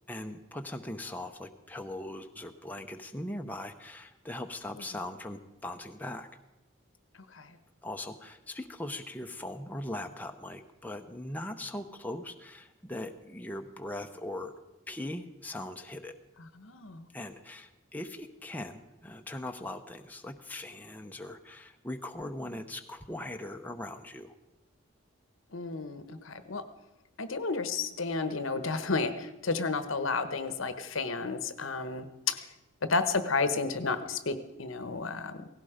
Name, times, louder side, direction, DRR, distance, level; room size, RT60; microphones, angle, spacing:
voice 1, 0.1-6.3 7.8-14.5 14.9-16.2 17.1-24.3, left 1 dB, 10° left, 4 dB, 0.8 m, -40 dB
voice 2, 16.6-17.1 25.5-26.6 27.2-32.5 32.8-35.5, left 4 dB, 80° left, 11 dB, 1.1 m, -32 dB
17.5 x 16.0 x 5.0 m, 1.0 s
head